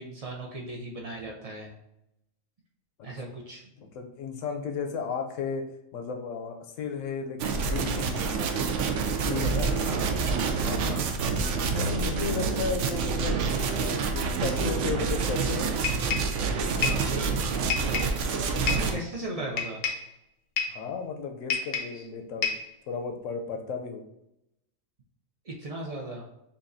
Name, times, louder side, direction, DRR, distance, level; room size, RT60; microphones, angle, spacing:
voice 1, 0.0-1.7 3.0-3.6 9.9-10.2 10.8-11.1 16.5-17.9 18.6-19.8 21.9-22.0 25.4-26.3, right 2 dB, 45° right, -1 dB, 0.4 m, -37 dB
voice 2, 3.8-5.6 5.9-8.5 9.2-9.8 10.6-11.1 11.7-13.4 13.8-15.7 20.7-22.6 22.9-24.1, left 5 dB, 70° left, 4 dB, 0.9 m, -34 dB
sound 1, 7.4-18.9, right 4 dB, 65° right, 0.8 m, -27 dB
sound 2, 15.8-16.4 16.8-17.1 17.7-18.2 18.7-18.9 19.6-20.1 20.6-20.8 21.5-22.0 22.4-22.7, left 6 dB, 90° left, 1.3 m, -29 dB
7.0 x 2.5 x 2.6 m, 0.84 s
omnidirectional pair, 1.5 m